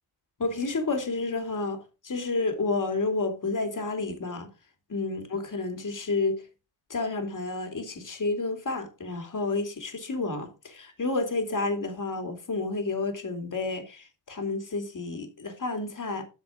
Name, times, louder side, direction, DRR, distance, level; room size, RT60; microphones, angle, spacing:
voice 1, 0.4-4.5 4.9-6.4 6.9-16.2, left 3 dB, 40° left, 2.8 m, -30 dB
8.9 x 5.8 x 4.6 m
supercardioid pair, 60°, 48 cm